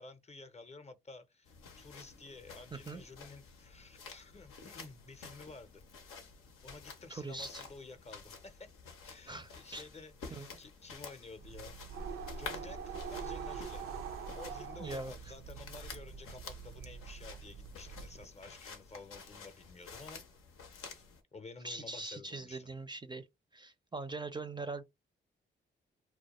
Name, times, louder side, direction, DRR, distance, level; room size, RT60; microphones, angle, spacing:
voice 1, 0.0-5.8 6.6-8.7 9.0-11.8 12.4-13.9 14.3-20.2 20.9-21.0 21.3-22.7, left 3 dB, 30° left, 0.6 m, -52 dB
sound 1, 1.5-21.2, left 5 dB, 90° left, 0.6 m, -51 dB
voice 2, 2.7-3.0 7.1-7.6 9.3-9.9 10.3-10.6 14.8-15.3 21.6-23.3 23.5-24.8, right 3 dB, 20° right, 0.4 m, -42 dB
sound 2, 11.4-18.2, right 6 dB, 90° right, 0.4 m, -44 dB
2.2 x 2.2 x 2.9 m
supercardioid pair, 50°, 21 cm